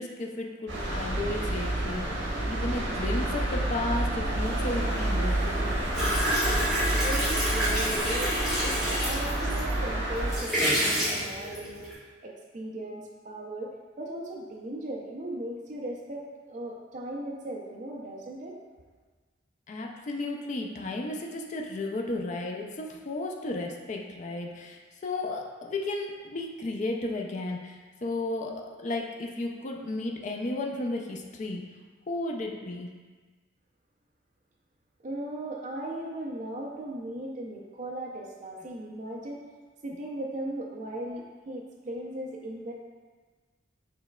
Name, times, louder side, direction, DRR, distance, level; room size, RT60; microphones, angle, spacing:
voice 1, 0.0-5.6 19.7-31.6 32.1-32.9, left 2 dB, 40° left, 1 dB, 0.4 m, -34 dB
sound 1, 0.7-10.4, right 1 dB, 75° right, 1.3 m, -29 dB
sound 2, 5.9-9.7 10.1-11.9, equal, 5° right, 1.5 m, -28 dB
voice 2, 6.9-18.6 35.0-39.5 39.8-42.7, right 1 dB, 40° right, -2 dB, 0.4 m, -37 dB
6.8 x 3.2 x 2.2 m, 1.4 s
head